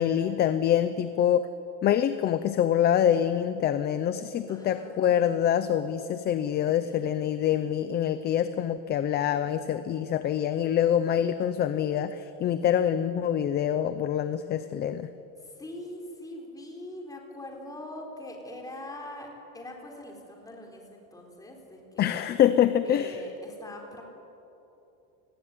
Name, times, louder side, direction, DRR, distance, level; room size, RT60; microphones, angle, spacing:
voice 1, 0.0-1.5 1.8-15.1 22.0-23.2, left 10 dB, 25° left, 11 dB, 0.6 m, -25 dB
voice 2, 4.5-5.3 6.8-7.9 15.4-19.3 19.5-22.2 22.8-24.0, left 1 dB, 10° left, 0 dB, 4.1 m, -43 dB
28.5 x 20.5 x 9.5 m, 3.0 s
cardioid pair, 175°, 42 cm